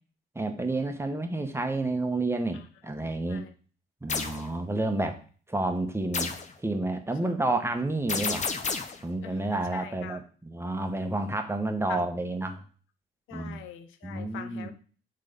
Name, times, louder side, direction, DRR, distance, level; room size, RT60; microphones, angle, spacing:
voice 1, 0.3-3.5 4.0-5.2 5.5-6.3 6.6-8.5 9.0-12.6 13.3-13.6 14.0-14.7, right 2 dB, 10° right, 6 dB, 1.0 m, -30 dB
sound 1, 4.1-4.4 6.1-6.5 8.1-9.0, left 5 dB, 35° left, 0.8 m, -30 dB
voice 2, 9.2-10.2 11.9-12.0 13.3-14.7, left 9 dB, 90° left, 8 dB, 0.7 m, -43 dB
6.5 x 3.8 x 5.1 m, 0.42 s
cardioid pair, 90°, 20 cm